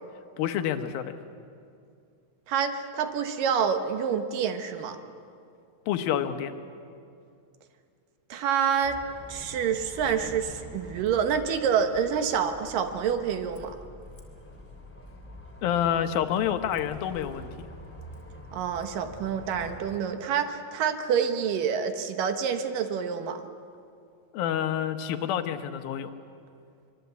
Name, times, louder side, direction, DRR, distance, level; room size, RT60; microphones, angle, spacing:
voice 1, 0.4-1.1 5.9-6.5 15.6-17.5 24.3-26.1, left 9 dB, 85° left, 8 dB, 2.9 m, -28 dB
voice 2, 2.5-5.0 8.3-9.0 9.3-13.8 18.5-23.5, right 7 dB, 75° right, 8 dB, 2.8 m, -27 dB
Bus, 8.8-20.0, equal, 5° left, 2.4 m, -46 dB
24.5 x 24.0 x 8.1 m, 2.4 s
omnidirectional pair, 4.1 m